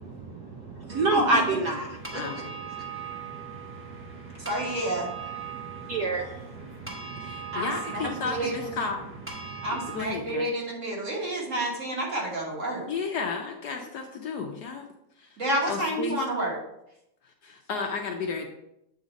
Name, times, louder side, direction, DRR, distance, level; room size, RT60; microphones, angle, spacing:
voice 1, 0.2-2.0 3.1-3.4 4.6-4.9 5.5-7.6, right 2 dB, 65° right, 1 dB, 1.0 m, -29 dB
sound 1, 0.9-10.0, right 6 dB, 10° right, 0.6 m, -41 dB
voice 2, 2.1-2.5 7.2-9.0 9.9-10.5 11.6-11.7 12.9-14.9 15.2-15.3 15.7-16.2 17.4-18.5, left 5 dB, 70° left, 2 dB, 1.0 m, -33 dB
voice 3, 4.5-5.1 7.5-8.7 9.6-12.9 15.4-16.6, right 1 dB, 40° right, -2 dB, 1.6 m, -30 dB
8.0 x 3.8 x 4.0 m, 0.80 s
omnidirectional pair, 2.2 m